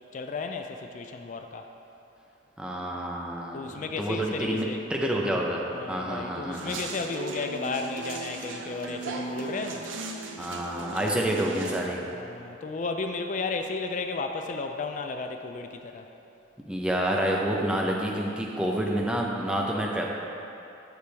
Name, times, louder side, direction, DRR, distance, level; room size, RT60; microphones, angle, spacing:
voice 1, 0.1-1.7 3.5-4.8 5.7-9.9 12.1-16.1, left 4 dB, 40° left, 5 dB, 0.3 m, -34 dB
voice 2, 2.6-5.6 5.9-6.8 10.4-12.0 16.7-20.1, right 1 dB, 5° right, -2 dB, 0.7 m, -28 dB
sound 1, 6.5-11.8, right 3 dB, 90° right, 0.6 m, -37 dB
8.0 x 6.7 x 3.4 m, 2.9 s
head